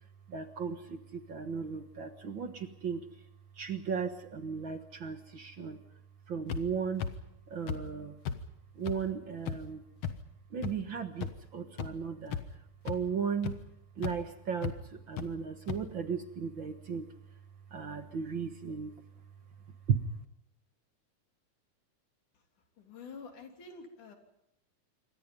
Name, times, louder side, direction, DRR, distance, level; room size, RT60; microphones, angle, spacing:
voice 1, 0.0-3.3 3.5-6.0 6.3-7.1 7.5-8.2 8.7-9.8 10.5-13.5 14.0-20.2, right 6 dB, 50° right, 8 dB, 1.8 m, -36 dB
sound 1, 6.5-6.6 7.0-7.1 7.7-7.8 8.2-8.4 8.9-9.0 9.5-9.6 10.0-10.1 10.6-10.7 11.2-11.3 11.8-11.9 12.3-12.6 12.9-13.0 13.4-13.5 14.0-14.1 14.6-14.7 15.2-15.3 15.7-15.8, left 7 dB, 60° left, 2.2 m, -34 dB
voice 2, 22.8-24.2, left 4 dB, 85° left, 4 dB, 4.8 m, -48 dB
27.5 x 24.5 x 5.4 m, 0.84 s
omnidirectional pair, 3.4 m